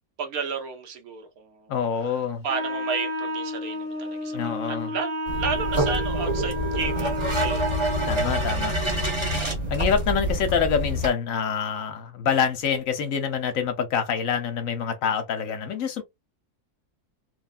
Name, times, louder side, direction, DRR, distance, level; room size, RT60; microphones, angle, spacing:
voice 1, 0.2-1.7 2.1-7.8, right 5 dB, 70° right, 1.2 m, -33 dB
voice 2, 1.7-2.4 4.3-4.9 8.1-8.8 9.7-16.0, left 7 dB, 65° left, 1.0 m, -26 dB
Wind instrument woodwind instrument, 2.5-8.3, left 1 dB, 10° left, 0.9 m, -31 dB
sound 1, 5.3-11.1, right 1 dB, 20° right, 1.0 m, -26 dB
3.2 x 2.2 x 2.4 m
omnidirectional pair, 1.6 m